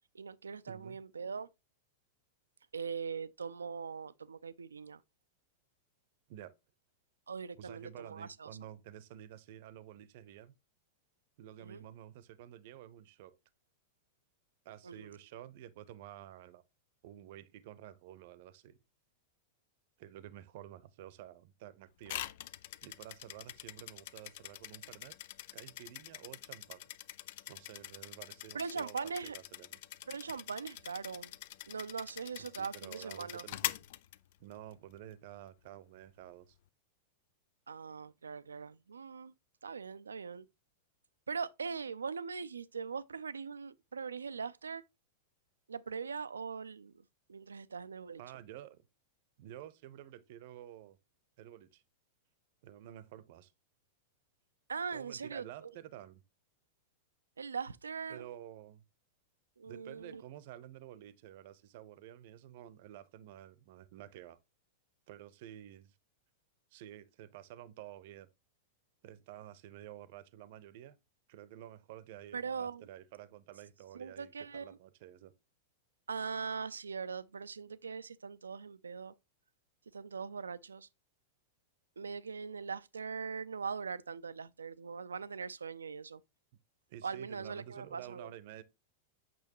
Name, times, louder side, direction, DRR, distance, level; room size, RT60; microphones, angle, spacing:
voice 1, 0.1-1.5 2.7-5.0 7.3-8.5 11.6-11.8 14.8-15.1 28.5-29.3 30.1-31.3 31.7-33.4 37.7-39.3 39.6-40.5 41.3-44.8 45.7-46.9 47.3-48.2 54.7-55.7 57.4-58.3 59.6-60.2 72.3-72.8 73.9-74.8 76.1-79.1 79.9-80.9 82.0-86.2 87.0-88.3, right 5 dB, 80° right, 0.4 m, -41 dB
voice 2, 0.7-1.0 6.3-6.6 7.5-10.5 11.4-13.4 14.6-16.6 17.0-18.8 20.0-22.3 22.8-25.2 25.5-26.8 27.5-29.0 29.2-29.8 32.4-33.8 34.4-36.6 48.2-48.8 49.4-51.0 51.4-51.8 52.6-53.5 54.9-56.2 58.1-58.8 59.7-64.4 65.1-65.9 66.7-68.3 69.0-71.0 71.3-75.3 86.9-88.6, right 12 dB, 55° right, 0.8 m, -51 dB
sound 1, 22.0-34.7, left 14 dB, 55° left, 0.4 m, -44 dB
8.6 x 6.2 x 3.0 m
figure-of-eight pair, 95°, 0 cm